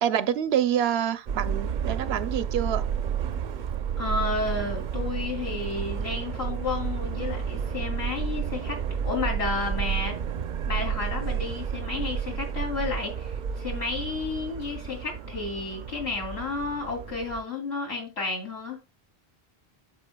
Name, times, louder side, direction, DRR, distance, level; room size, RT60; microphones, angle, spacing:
voice 1, 0.0-2.9, right 10 dB, 80° right, 0.9 m, -26 dB
Subway metro underground, 1.3-17.4, right 7 dB, 55° right, 0.6 m, -31 dB
voice 2, 4.0-8.8 9.0-10.2 10.7-18.8, left 3 dB, 80° left, 3.2 m, -32 dB
8.5 x 7.7 x 2.2 m
omnidirectional pair, 1.1 m